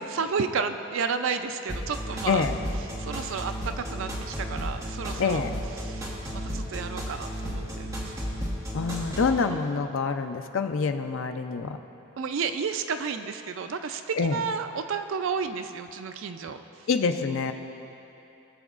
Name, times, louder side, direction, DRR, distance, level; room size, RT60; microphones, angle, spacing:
voice 1, 0.1-2.5 3.0-5.4 5.8-8.1 12.2-16.6, right 5 dB, 60° right, 8 dB, 0.4 m, -32 dB
sound 1, 1.7-9.4, equal, 15° right, 1.2 m, -33 dB
voice 2, 2.3-2.6 5.2-5.5 8.7-11.8 14.2-14.4 16.9-17.5, left 5 dB, 60° left, 7 dB, 0.4 m, -26 dB
18.5 x 7.0 x 2.5 m, 3.0 s
head